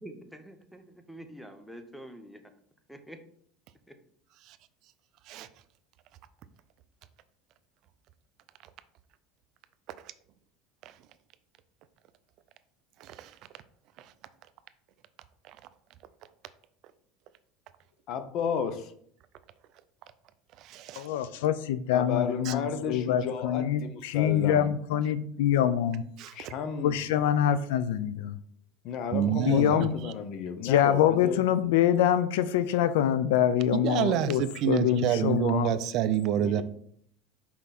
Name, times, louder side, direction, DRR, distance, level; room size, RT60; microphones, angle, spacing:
voice 1, 0.0-2.4 2.9-3.2 3.9-4.0, right 1 dB, ahead, 0.8 m, -46 dB
voice 2, 13.0-13.4 14.0-14.1 15.4-15.6 20.6-21.1 22.4-22.5 26.2-26.5 29.1-29.9 33.8-36.6, right 10 dB, 55° right, 0.5 m, -28 dB
voice 3, 18.1-18.9 21.9-24.7 26.3-27.0 28.8-31.4 36.4-36.6, left 7 dB, 55° left, 0.9 m, -33 dB
voice 4, 21.0-26.0 26.8-28.4 29.5-30.0 30.6-35.8, left 10 dB, 85° left, 0.5 m, -25 dB
5.7 x 4.7 x 4.2 m
supercardioid pair, 125°, 0 cm